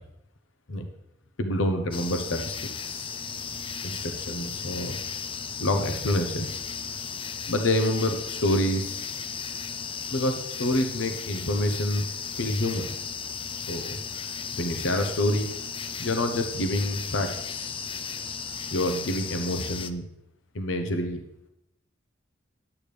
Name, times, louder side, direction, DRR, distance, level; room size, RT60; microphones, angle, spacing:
voice 1, 1.4-3.2 3.9-5.0 5.6-6.6 7.5-9.1 10.1-12.0 12.3-12.9 13.7-14.0 14.5-15.5 16.0-17.9 18.7-20.0 20.5-21.2, left 1 dB, 70° left, 6 dB, 0.8 m, -27 dB
sound 1, 1.9-19.9, left 6 dB, 25° left, 0.4 m, -35 dB
10.5 x 8.4 x 3.3 m, 0.82 s
head